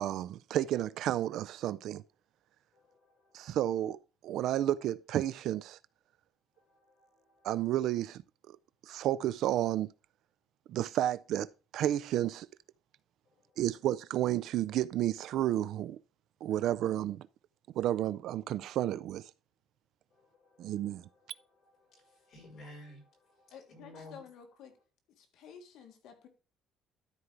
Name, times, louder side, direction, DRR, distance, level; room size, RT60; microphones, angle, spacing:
voice 1, 0.0-2.0 3.3-4.0 4.2-5.8 7.4-8.2 8.5-8.6 8.9-9.9 10.7-12.5 13.6-16.0 16.4-17.3 17.7-19.3 20.6-21.0, right 12 dB, 65° right, 0.3 m, -31 dB
voice 2, 2.7-3.6 6.5-7.6 13.3-13.6 20.1-24.2, left 1 dB, 40° left, 5.6 m, -56 dB
voice 3, 23.5-24.8 25.2-26.3, left 7 dB, 70° left, 1.7 m, -52 dB
12.5 x 4.7 x 3.8 m
cardioid pair, 170°, 0 cm